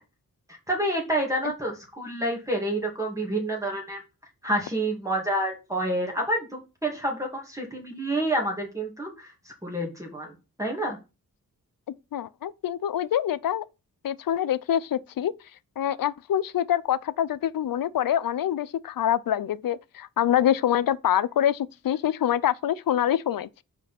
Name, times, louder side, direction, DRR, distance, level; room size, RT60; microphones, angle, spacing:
voice 1, 0.7-4.0 4.4-6.5 6.8-9.3 9.6-11.0, right 1 dB, 10° right, 2.4 m, -28 dB
voice 2, 12.1-13.6 14.0-15.3 15.8-23.6, left 10 dB, 75° left, 0.5 m, -25 dB
5.3 x 4.9 x 5.9 m
wide cardioid pair, 115°, 35 cm